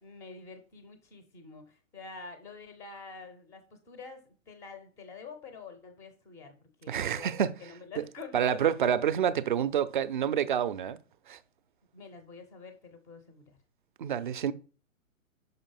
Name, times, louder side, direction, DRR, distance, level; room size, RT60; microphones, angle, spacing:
voice 1, 0.0-8.6 11.9-13.6, left 4 dB, 5° left, 0.5 m, -47 dB
voice 2, 6.9-7.6 8.0-8.1 8.3-11.0 11.3-11.4 14.0-14.5, right 9 dB, 40° right, 0.5 m, -28 dB
5.6 x 5.1 x 5.4 m
figure-of-eight pair, 120°, 41 cm